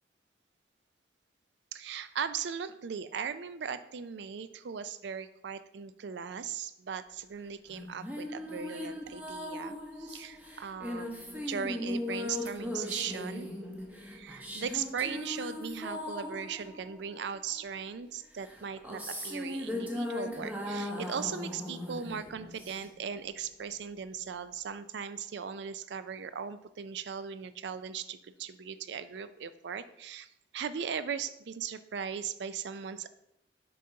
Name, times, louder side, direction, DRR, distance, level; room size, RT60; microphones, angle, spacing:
voice 1, 1.7-13.5 14.0-30.3 30.5-33.1, right 7 dB, 70° right, 13 dB, 0.4 m, -38 dB
sound 1, 7.7-17.6 18.4-23.1, left 1 dB, 10° right, 0.9 m, -38 dB
6.4 x 3.9 x 5.6 m, 0.80 s
head